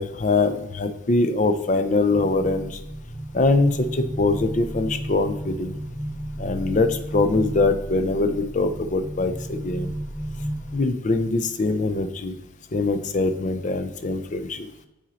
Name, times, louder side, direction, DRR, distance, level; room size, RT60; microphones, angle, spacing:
voice 1, 0.0-2.7 3.3-5.7 6.4-9.9 10.7-12.3 12.7-14.7, left 3 dB, 40° left, 9 dB, 0.5 m, -23 dB
sound 1, 2.0-10.8, right 1 dB, 15° right, 0.9 m, -33 dB
6.0 x 4.1 x 4.0 m, 0.94 s
head